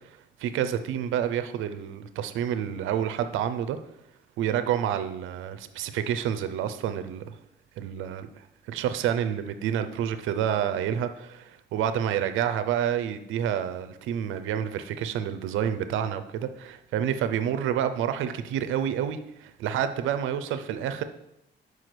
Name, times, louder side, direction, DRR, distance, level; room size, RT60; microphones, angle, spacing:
voice 1, 0.4-3.8 4.4-7.3 7.8-8.3 8.7-21.0, right 9 dB, 85° right, 10 dB, 0.5 m, -28 dB
4.8 x 4.8 x 6.0 m, 0.84 s
cardioid pair, 90°, 20 cm